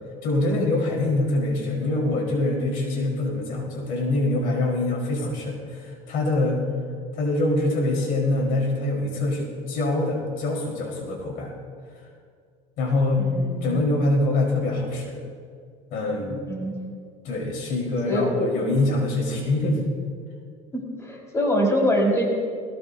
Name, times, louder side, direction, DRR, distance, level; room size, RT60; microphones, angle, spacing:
voice 1, 0.2-6.6 7.1-11.5 12.0-12.1 12.8-13.3 13.6-15.2 15.9-16.5 17.2-19.8, left 2 dB, 65° left, -1 dB, 4.7 m, -24 dB
voice 2, 13.2-13.6 16.5-16.7 18.1-18.5 20.7-22.2, equal, 20° left, -2 dB, 5.1 m, -24 dB
21.0 x 19.5 x 2.8 m, 2.1 s
cardioid pair, 115°, 16 cm